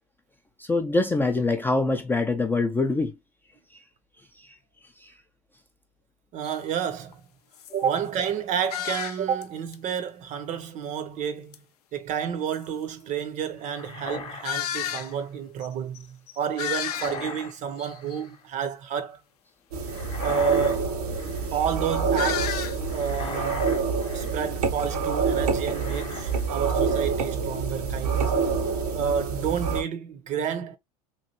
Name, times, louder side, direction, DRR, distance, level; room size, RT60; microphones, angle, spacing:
voice 1, 0.6-3.1 5.0-5.1, left 3 dB, 10° left, 0.4 m, -24 dB
voice 2, 6.3-7.2 7.7-11.6 11.9-19.2 20.2-20.9 21.5-23.8 24.1-28.5 28.9-30.8, right 8 dB, 40° right, 0.7 m, -30 dB
sound 1, 6.4-6.6 7.1-7.2 7.5-7.8 8.7-9.4 9.7-9.8 11.5-11.6 12.5-12.6 14.4-15.1 15.6-15.7 15.9-16.0 16.3-17.4 17.8-18.2 22.1-22.8, left 10 dB, 85° left, 0.5 m, -31 dB
sound 2, 13.6-15.3 16.6-17.6 17.8-18.4 19.8-20.8 21.1-21.6 22.8-24.5 25.6-26.5 26.8-27.2, left 5 dB, 25° left, 0.8 m, -40 dB
sound 3, 19.7-29.8, right 5 dB, 85° right, 0.9 m, -27 dB
3.1 x 2.4 x 2.8 m
hypercardioid pair, 95°, 19 cm